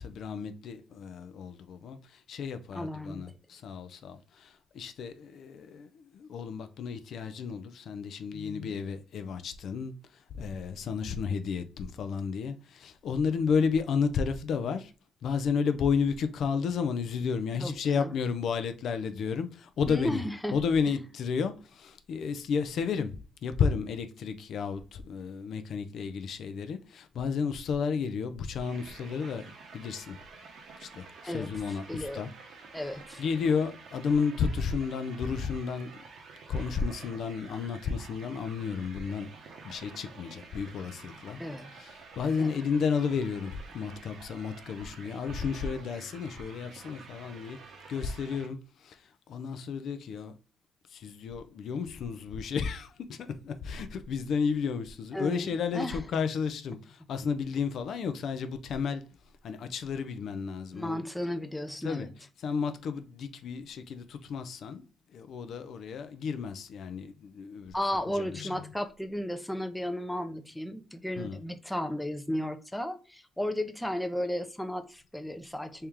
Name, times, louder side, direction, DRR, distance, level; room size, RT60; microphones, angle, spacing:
voice 1, 0.0-14.9 15.2-20.2 20.5-30.2 30.8-32.3 32.8-36.0 36.5-39.3 39.6-47.6 47.9-50.4 50.9-59.1 59.4-61.3 61.8-64.8 65.1-68.7 71.2-71.5, left 6 dB, 65° left, 0.4 m, -32 dB
voice 2, 2.7-3.2 17.6-18.1 19.9-20.5 31.2-31.5 31.9-32.2 32.7-33.2 41.4-41.7 42.4-42.5 55.1-56.0 60.7-62.1 67.7-75.9, left 1 dB, 5° left, 0.5 m, -34 dB
sound 1, 28.6-48.5, right 4 dB, 65° right, 1.0 m, -49 dB
3.3 x 2.9 x 3.5 m
cardioid pair, 90°, 0 cm